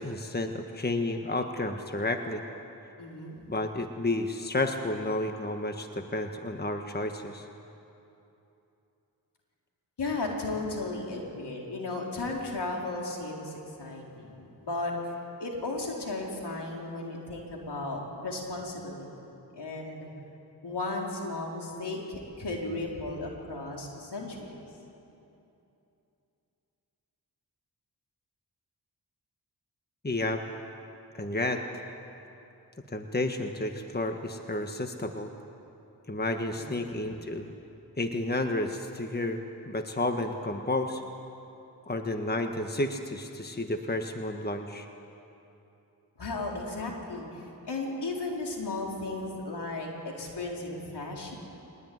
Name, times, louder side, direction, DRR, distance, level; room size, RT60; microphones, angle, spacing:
voice 1, 0.0-2.4 3.5-7.5 30.0-30.4 31.1-31.6 32.9-35.3 36.1-37.5 38.0-41.0 41.9-44.9, left 2 dB, 25° left, 5 dB, 1.6 m, -31 dB
voice 2, 3.0-3.4 10.0-15.0 15.4-19.1 19.5-20.1 20.6-24.6 36.5-36.9 46.2-51.3, left 2 dB, 75° left, -1 dB, 4.3 m, -35 dB
22.0 x 20.0 x 9.6 m, 2.8 s
cardioid pair, 45°, 41 cm